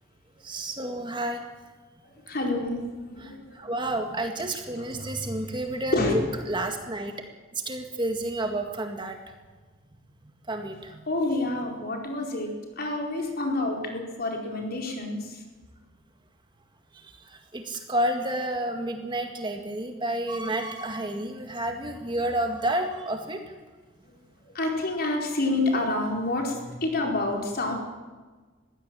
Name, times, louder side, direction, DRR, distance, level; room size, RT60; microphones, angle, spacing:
voice 1, 0.4-1.4 3.2-7.1 7.6-9.2 10.5-11.0 16.9-23.4, right 1 dB, 25° right, 5 dB, 1.9 m, -30 dB
voice 2, 2.3-3.4 5.9-6.1 11.1-12.5 12.8-15.4 24.5-27.7, left 2 dB, 50° left, 1 dB, 4.6 m, -28 dB
22.0 x 16.0 x 7.7 m, 1.4 s
head